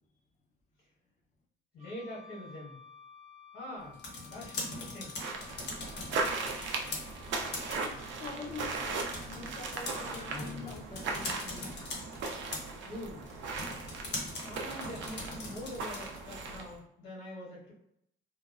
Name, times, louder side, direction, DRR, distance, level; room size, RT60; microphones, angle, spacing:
voice 1, 1.7-2.8 3.5-5.2 12.8-13.3 14.4-17.7, left 1 dB, 85° left, -6 dB, 1.5 m, -44 dB
Wind instrument woodwind instrument, 1.8-10.5, left 7 dB, 30° right, 0.7 m, -56 dB
sound 1, 3.8-16.3, left 2 dB, 60° left, 0.8 m, -43 dB
sound 2, 5.2-16.8, right 3 dB, 75° right, 0.5 m, -38 dB
voice 2, 7.5-11.7 12.0-12.1, left 3 dB, 40° left, 3 dB, 0.6 m, -45 dB
3.0 x 2.1 x 2.4 m, 0.74 s
cardioid pair, 90°, 20 cm